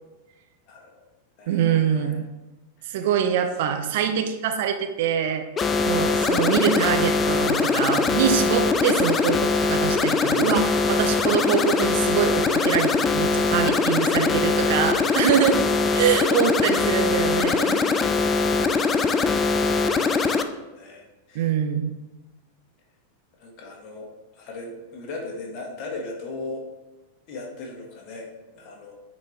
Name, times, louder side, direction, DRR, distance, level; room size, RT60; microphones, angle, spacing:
voice 1, 0.7-1.0 1.4-2.2 2.8-3.0 13.5-13.7 14.1-15.3 20.0-21.5 23.4-26.6 27.3-29.0, left 2 dB, 40° left, 1 dB, 1.5 m, -38 dB
voice 2, 1.5-2.3 2.9-5.5 5.8-15.6 15.9-17.9 21.3-21.9, right 8 dB, 50° right, 6 dB, 0.6 m, -24 dB
sound 1, 5.6-20.4, left 4 dB, 20° left, 0.4 m, -22 dB
8.9 x 4.1 x 3.2 m, 1.1 s
figure-of-eight pair, 90°, 0 cm